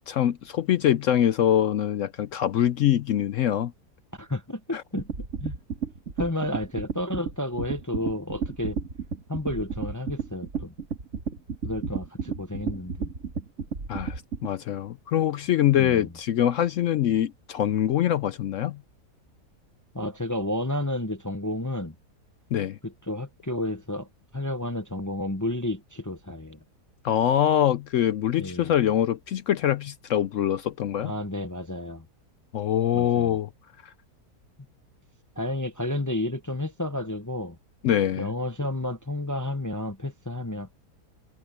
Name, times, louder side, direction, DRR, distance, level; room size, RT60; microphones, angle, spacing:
voice 1, 0.1-3.7 4.7-4.8 13.9-18.8 22.5-22.8 27.0-31.1 32.5-33.5 33.8-33.9 37.8-38.3, left 11 dB, 70° left, 0.8 m, -24 dB
voice 2, 4.1-5.6 6.2-8.8 9.3-10.7 11.6-13.1 15.7-16.1 19.9-21.9 22.8-26.6 28.4-28.7 31.0-32.0 32.9-33.4 35.4-37.6 38.2-40.7, left 1 dB, 15° left, 0.7 m, -31 dB
sound 1, 5.0-14.5, right 5 dB, 50° right, 2.6 m, -32 dB
omnidirectional pair, 1.7 m